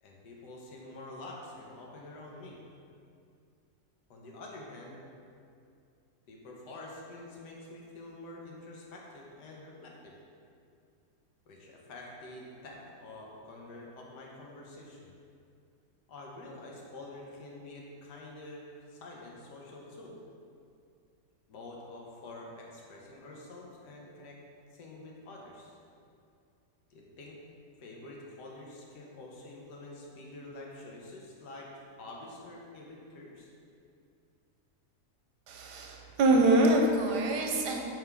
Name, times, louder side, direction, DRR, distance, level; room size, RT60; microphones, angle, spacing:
voice 1, 0.0-2.6 4.1-5.0 6.3-10.2 11.5-15.1 16.1-20.2 21.5-24.4 24.7-25.7 26.9-27.4 27.8-33.5, left 2 dB, 80° left, -2 dB, 1.6 m, -47 dB
voice 2, 35.5-37.9, right 2 dB, 85° right, 1 dB, 1.3 m, -25 dB
9.0 x 3.6 x 3.5 m, 2.4 s
omnidirectional pair, 1.8 m